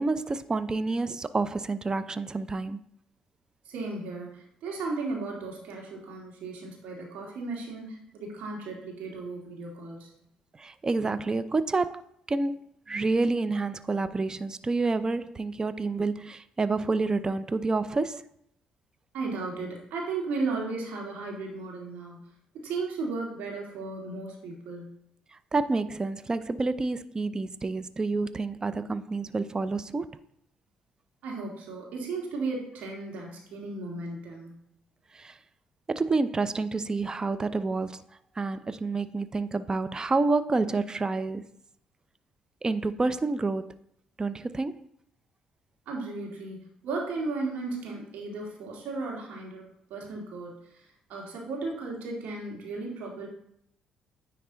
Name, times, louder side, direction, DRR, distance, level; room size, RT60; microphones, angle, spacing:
voice 1, 0.0-2.8 10.6-12.0 12.3-18.2 25.3-30.1 35.1-35.4 35.9-38.0 38.4-41.5 42.6-43.8 44.2-44.9, right 3 dB, 25° right, 13 dB, 0.5 m, -28 dB
voice 2, 3.7-10.1 19.1-22.2 22.5-24.9 31.2-34.6 45.9-49.6 49.9-53.3, right 3 dB, 75° right, -1 dB, 2.1 m, -35 dB
9.7 x 3.3 x 3.9 m, 0.74 s
supercardioid pair, 65°, 3 cm